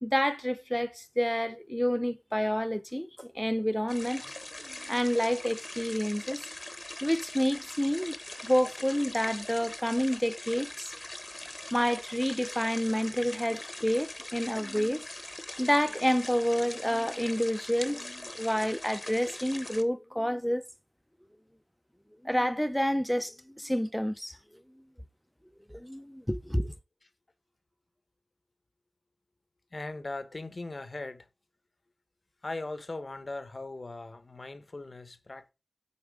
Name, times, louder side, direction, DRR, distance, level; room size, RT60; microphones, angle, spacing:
voice 1, 0.0-4.3 4.6-6.4 7.0-8.2 8.4-10.9 11.7-15.0 15.6-20.6 22.2-24.4 25.7-26.7, equal, 5° left, 0.6 m, -29 dB
sound 1, 3.9-19.8, left 1 dB, 30° left, 1.0 m, -42 dB
voice 2, 29.7-31.3 32.4-35.5, left 2 dB, 50° left, 1.0 m, -39 dB
8.6 x 4.6 x 4.7 m
wide cardioid pair, 70°, 0 cm